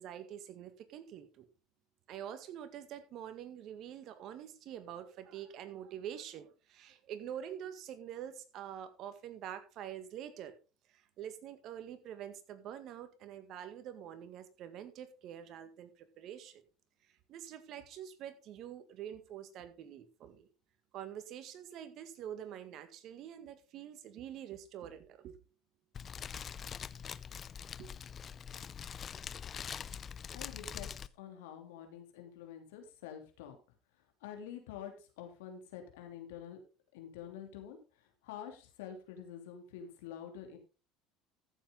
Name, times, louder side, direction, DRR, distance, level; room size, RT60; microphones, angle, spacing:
voice 1, 0.0-1.5 2.1-10.5 11.2-16.6 17.3-20.5 20.9-25.4 27.8-27.9, right 10 dB, 55° right, 1.9 m, -46 dB
Fire, 25.9-31.1, left 7 dB, 40° left, 0.6 m, -44 dB
voice 2, 30.3-30.9 31.1-33.6 34.2-36.6 36.9-40.6, left 9 dB, 85° left, 3.1 m, -47 dB
14.0 x 7.4 x 3.9 m
supercardioid pair, 90°, 0 cm